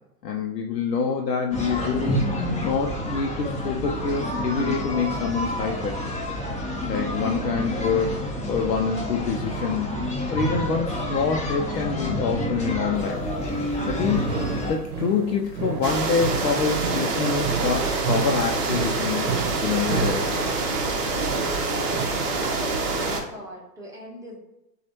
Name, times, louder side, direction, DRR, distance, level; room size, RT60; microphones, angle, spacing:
voice 1, 0.2-2.2 2.6-5.9 6.8-8.2 8.5-10.0 10.3-13.2 13.9-14.4 14.7-19.3 19.6-20.3, left 5 dB, 80° left, 1 dB, 0.6 m, -26 dB
sound 1, 1.5-14.7, left 1 dB, 15° left, 1.1 m, -28 dB
sound 2, 12.9-22.3, right 5 dB, 65° right, 0.9 m, -33 dB
sound 3, 15.8-23.2, right 3 dB, 30° right, 0.8 m, -26 dB
voice 2, 21.8-22.2 22.4-24.4, equal, 5° right, -5 dB, 1.1 m, -39 dB
5.9 x 2.4 x 2.8 m, 0.94 s
hypercardioid pair, 110°, 48 cm